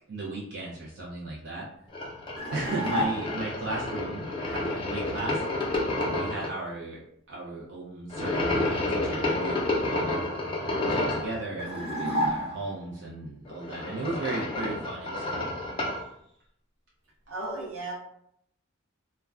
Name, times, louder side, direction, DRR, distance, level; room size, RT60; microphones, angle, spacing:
voice 1, 0.1-1.7 2.5-5.7 6.0-10.2 10.9-15.5, right 2 dB, 60° right, -5 dB, 0.5 m, -36 dB
sound 1, 1.9-6.5 8.1-11.3 13.4-16.0, left 2 dB, 25° left, 0.4 m, -30 dB
sound 2, 2.4-3.5 11.6-12.9, equal, 30° right, 0.8 m, -30 dB
voice 2, 17.3-18.0, right 2 dB, 85° right, -2 dB, 0.8 m, -34 dB
2.2 x 2.1 x 3.4 m, 0.71 s
head